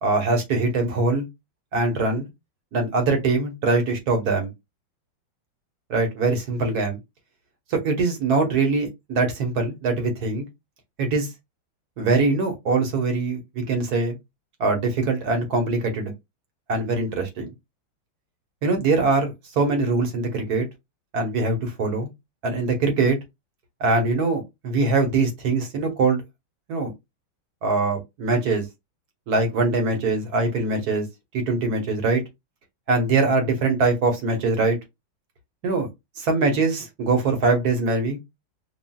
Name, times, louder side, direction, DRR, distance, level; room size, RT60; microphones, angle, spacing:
voice 1, 0.0-1.3 1.7-2.3 2.7-4.5 5.9-7.0 7.7-10.4 11.0-11.3 12.0-14.2 14.6-16.1 16.7-17.5 18.6-20.7 21.1-22.1 22.4-23.2 23.8-26.2 26.7-26.9 27.6-28.6 29.3-31.1 31.3-32.2 32.9-34.8 35.6-35.9 36.2-38.2, right 3 dB, 50° right, 1.5 m, -22 dB
5.5 x 2.6 x 2.3 m
omnidirectional pair, 2.3 m